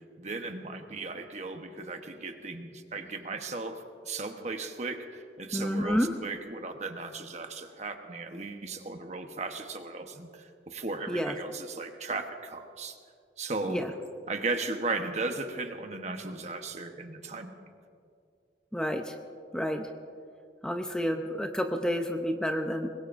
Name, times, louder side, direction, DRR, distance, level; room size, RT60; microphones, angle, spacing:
voice 1, 0.2-13.0 13.4-13.8 14.3-17.7, right 3 dB, 40° right, 5 dB, 1.1 m, -36 dB
voice 2, 5.5-6.1 11.1-11.3 13.7-13.9 18.7-19.1 19.5-19.9 20.6-22.9, equal, 5° left, 4 dB, 0.7 m, -29 dB
24.5 x 21.0 x 2.6 m, 2.3 s
head